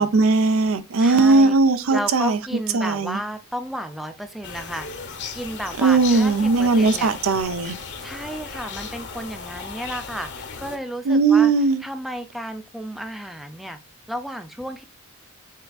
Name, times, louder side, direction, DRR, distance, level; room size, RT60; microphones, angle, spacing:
voice 1, 0.0-2.4 2.7-3.2 5.8-7.8 11.1-11.8, right 3 dB, 65° right, 0.5 m, -18 dB
voice 2, 1.0-1.6 1.9-4.9 5.3-7.1 8.0-13.8 14.1-14.8, equal, ahead, 0.4 m, -33 dB
sound 1, 4.4-10.8, left 5 dB, 50° left, 0.9 m, -36 dB
5.6 x 3.5 x 2.3 m
head